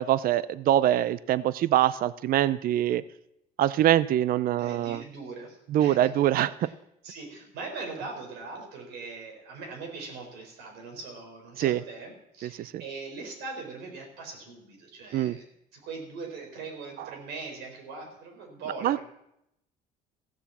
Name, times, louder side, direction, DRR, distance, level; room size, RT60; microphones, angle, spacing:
voice 1, 0.0-3.0 3.6-5.0 5.7-6.7 11.6-11.8 12.6-12.7 15.1-15.4 18.8-19.0, right 12 dB, 60° right, 17 dB, 0.5 m, -24 dB
voice 2, 4.6-6.1 6.6-6.7 7.0-19.0, right 4 dB, 85° right, 2 dB, 4.2 m, -41 dB
15.0 x 7.2 x 7.2 m, 0.79 s
cardioid pair, 110°, 17 cm